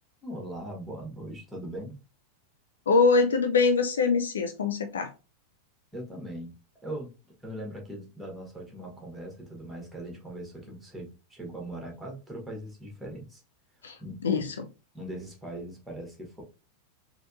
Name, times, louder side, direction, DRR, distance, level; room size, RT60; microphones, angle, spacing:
voice 1, 0.2-2.0 5.9-6.5 6.8-7.1 7.4-13.4 14.0-14.4 14.9-16.4, right 1 dB, 5° right, 1.6 m, -40 dB
voice 2, 2.9-5.1 13.8-14.0 14.2-14.5, left 4 dB, 65° left, 0.5 m, -23 dB
4.1 x 2.9 x 2.6 m
figure-of-eight pair, 90°, 0 cm